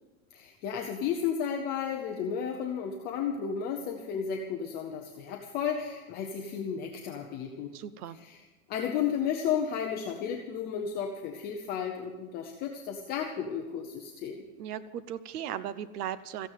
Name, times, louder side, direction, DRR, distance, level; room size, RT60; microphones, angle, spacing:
voice 1, 0.3-7.7 8.1-14.4, left 7 dB, 20° left, 2 dB, 0.7 m, -33 dB
voice 2, 7.7-8.2 14.6-16.5, right 10 dB, 90° right, 15 dB, 1.0 m, -37 dB
15.0 x 9.3 x 9.2 m, 1.2 s
supercardioid pair, 175°, 44 cm